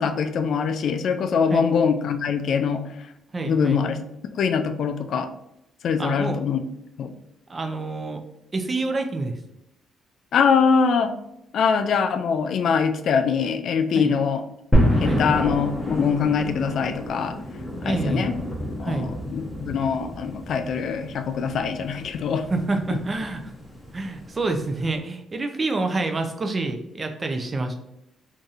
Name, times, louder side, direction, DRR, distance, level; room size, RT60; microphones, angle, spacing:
voice 1, 0.0-2.8 3.4-4.0 4.4-5.3 5.8-6.6 7.0-7.1 10.3-11.1 11.5-14.4 14.8-17.4 17.9-18.4 18.8-22.5, left 6 dB, 65° left, 8 dB, 0.3 m, -23 dB
voice 2, 3.3-3.8 6.0-6.4 7.5-8.2 8.5-9.3 13.9-14.1 15.0-15.3 17.8-18.3 18.8-19.1 22.5-23.4 23.9-27.7, right 3 dB, 30° right, 5 dB, 0.5 m, -27 dB
sound 1, 14.7-25.0, equal, 10° left, 1.0 m, -28 dB
3.9 x 2.6 x 2.4 m, 0.84 s
cardioid pair, 90°, 0 cm